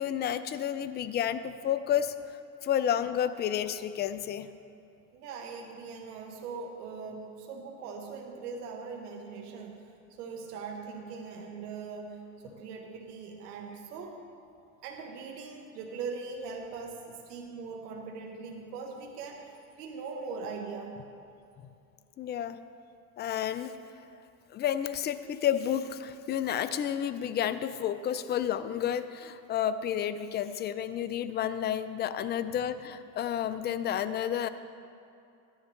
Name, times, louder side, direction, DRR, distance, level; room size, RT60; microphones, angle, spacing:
voice 1, 0.0-2.1 2.6-4.5 22.2-22.6 23.2-23.7 24.5-34.5, left 10 dB, 25° left, 12 dB, 0.4 m, -31 dB
voice 2, 5.1-9.8 10.1-14.2 14.8-21.0, right 4 dB, 90° right, 2 dB, 1.2 m, -41 dB
13.5 x 10.5 x 3.2 m, 2.7 s
supercardioid pair, 100°, 46 cm